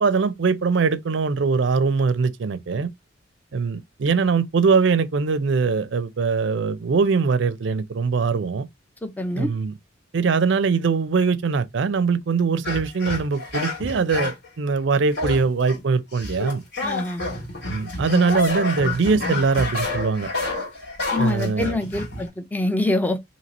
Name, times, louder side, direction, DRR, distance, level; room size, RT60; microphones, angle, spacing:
voice 1, 0.0-2.9 3.5-8.7 9.4-9.8 10.1-16.6 17.7-20.3 21.2-21.8, right 5 dB, 65° right, 0.4 m, -22 dB
voice 2, 9.0-9.5 16.8-17.2 21.1-23.2, left 2 dB, 10° left, 0.4 m, -25 dB
sound 1, 12.6-14.5 15.1-15.8 16.1-22.3, left 2 dB, 60° left, 1.7 m, -28 dB
2.8 x 2.8 x 4.0 m
head